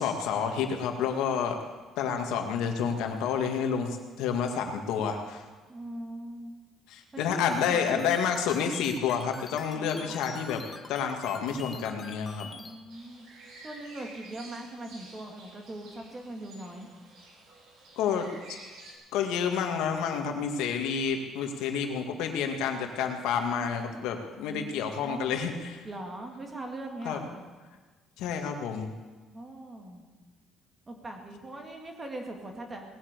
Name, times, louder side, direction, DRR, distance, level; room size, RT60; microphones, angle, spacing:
voice 1, 0.0-1.6 2.0-5.4 6.9-12.5 18.0-18.3 19.1-25.8 27.1-27.2 28.2-28.9, left 7 dB, 90° left, 4 dB, 2.0 m, -29 dB
voice 2, 5.7-6.6 7.1-7.4 7.7-8.0 9.7-10.1 12.6-13.3 13.6-16.9 24.4-25.3 25.8-27.4 29.3-30.1 30.9-32.8, right 1 dB, 15° right, 3 dB, 2.0 m, -41 dB
sound 1, 7.5-12.7, left 4 dB, 20° left, 1.0 m, -45 dB
sound 2, 12.9-18.9, right 2 dB, 75° right, 4.3 m, -51 dB
19.0 x 8.3 x 8.2 m, 1.3 s
cardioid pair, 175°, 0 cm